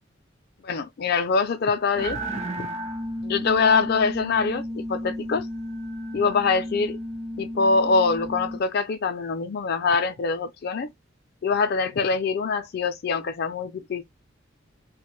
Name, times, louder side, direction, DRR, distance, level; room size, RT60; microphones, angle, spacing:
voice 1, 0.6-2.2 2.6-2.7 3.2-5.5 6.1-7.0 7.4-10.9 11.4-14.0, left 4 dB, 50° left, 0.4 m, -24 dB
sound 1, 2.0-8.6, equal, 35° right, 0.6 m, -33 dB
2.5 x 2.2 x 3.0 m
head